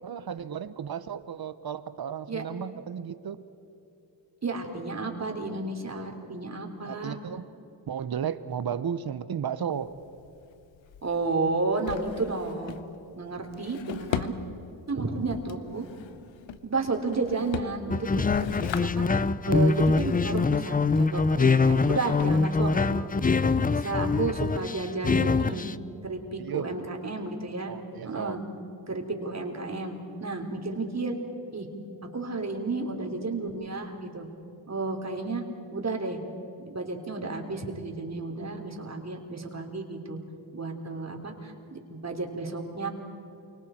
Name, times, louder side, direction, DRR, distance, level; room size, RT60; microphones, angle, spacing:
voice 1, 0.0-3.4 6.9-7.5 7.9-9.9 15.1-15.2 26.4-26.8 27.7-28.4, right 8 dB, 55° right, 13 dB, 1.2 m, -34 dB
voice 2, 4.4-7.2 11.0-12.8 13.1-14.3 14.9-15.8 16.6-19.1 19.5-23.1 23.7-25.7 26.0-27.7 28.0-28.4 28.9-31.2 31.5-31.7 32.1-34.3 34.7-35.4 35.7-36.2 36.6-40.2 40.5-42.9, right 3 dB, 35° right, 2 dB, 3.6 m, -32 dB
Drawer open or close, 9.7-24.9, left 8 dB, 85° left, 1.0 m, -41 dB
sound 1, 17.9-25.7, left 4 dB, 20° left, 0.6 m, -24 dB
28.5 x 25.0 x 4.6 m, 2.9 s
cardioid pair, 70°, 44 cm